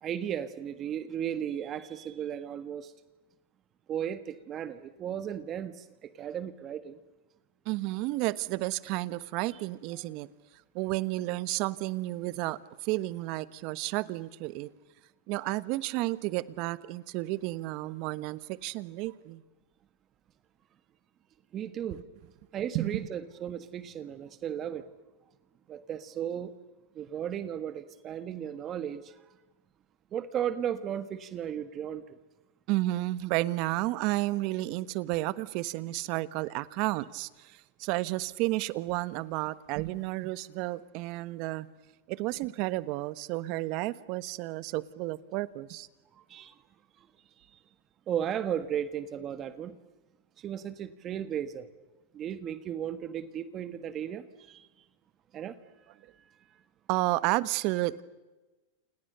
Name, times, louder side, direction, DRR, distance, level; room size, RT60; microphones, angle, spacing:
voice 1, 0.0-2.9 3.9-7.0 21.5-22.0 22.5-24.9 25.7-26.5 26.9-29.1 30.1-32.2 46.3-46.5 48.1-49.8 50.4-51.7 52.1-54.7 55.3-55.6, right 9 dB, 30° right, 1.5 m, -35 dB
voice 2, 7.6-10.3 10.7-14.7 15.3-19.4 22.7-22.9 32.7-41.7 42.1-45.9 56.9-58.0, right 18 dB, 50° right, 1.2 m, -32 dB
29.5 x 28.5 x 6.8 m
supercardioid pair, 130°, 0 cm